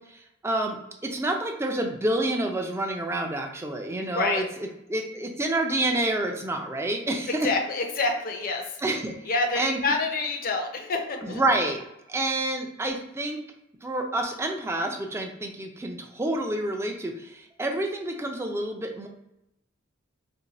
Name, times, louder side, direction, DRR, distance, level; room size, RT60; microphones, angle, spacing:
voice 1, 0.1-0.8 1.0-4.4 4.9-7.5 8.8-9.1 9.6-9.8 11.2-11.8 12.1-13.4 13.8-19.1, right 1 dB, 15° right, 3 dB, 0.4 m, -28 dB
voice 2, 4.1-4.5 7.3-8.8 9.3-11.4, left 3 dB, 45° left, 3 dB, 0.5 m, -27 dB
2.6 x 2.2 x 4.0 m, 0.84 s
head